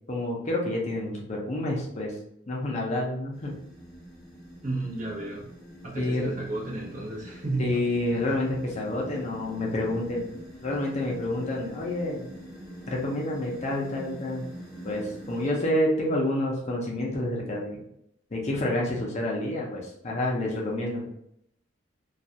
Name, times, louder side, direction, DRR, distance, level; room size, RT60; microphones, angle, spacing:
voice 1, 0.1-2.2 2.5-3.7 6.0-6.3 7.6-10.3 10.6-12.3 12.9-14.5 14.8-17.8 18.3-21.0, left 1 dB, 35° left, -2 dB, 0.5 m, -28 dB
sound 1, 3.3-15.5, right 1 dB, ahead, 1.0 m, -45 dB
voice 2, 4.6-5.5 5.8-7.9, right 2 dB, 45° right, -3 dB, 0.8 m, -32 dB
2.4 x 2.3 x 2.7 m, 0.76 s
head